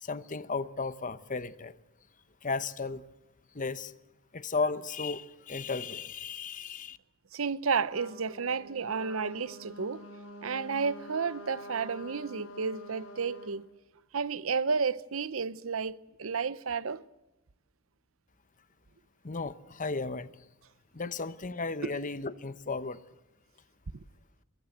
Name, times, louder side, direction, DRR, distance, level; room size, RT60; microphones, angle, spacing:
voice 1, 0.0-1.8 2.4-3.0 3.5-3.9 4.3-7.0 19.2-20.3 20.9-23.0, left 4 dB, 40° left, 1.0 m, -34 dB
voice 2, 7.3-10.0 10.4-13.6 14.1-17.0 21.8-21.9, right 5 dB, 80° right, 0.8 m, -32 dB
Trumpet, 7.9-13.5, equal, 70° left, 7.5 m, -47 dB
22.5 x 22.5 x 8.0 m
head